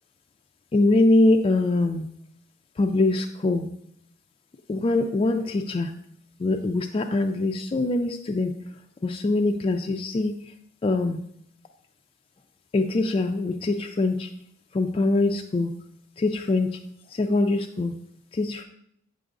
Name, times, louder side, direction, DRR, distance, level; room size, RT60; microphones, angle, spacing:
voice 1, 0.7-2.1 2.8-3.7 4.7-5.9 6.4-8.5 9.0-10.3 10.8-11.2 12.7-14.3 14.7-15.7 16.2-16.7 17.2-17.9 18.4-18.6, left 2 dB, 30° left, 4 dB, 0.3 m, -23 dB
7.9 x 5.4 x 2.5 m, 0.72 s
head